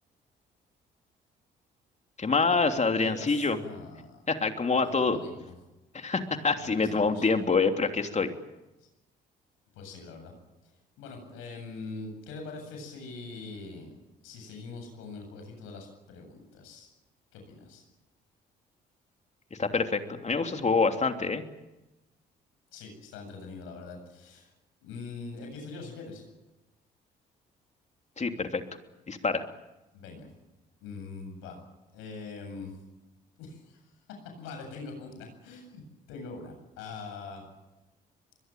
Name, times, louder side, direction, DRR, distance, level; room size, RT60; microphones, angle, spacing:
voice 1, 2.2-3.6 4.3-5.2 5.9-8.3 19.6-21.4 28.2-28.6 29.1-29.4, left 4 dB, 35° left, 6 dB, 3.1 m, -26 dB
voice 2, 3.0-4.2 4.8-5.5 6.6-7.3 8.8-8.9 9.7-10.3 11.0-13.9 14.2-16.9 17.3-17.8 22.7-24.5 24.8-26.3 29.9-30.3 30.8-31.6 31.9-32.7 33.4-33.8 34.4-35.8 36.1-37.4, left 4 dB, 80° left, 4 dB, 7.9 m, -43 dB
22.5 x 22.5 x 9.3 m, 1.0 s
hypercardioid pair, 55°, 21 cm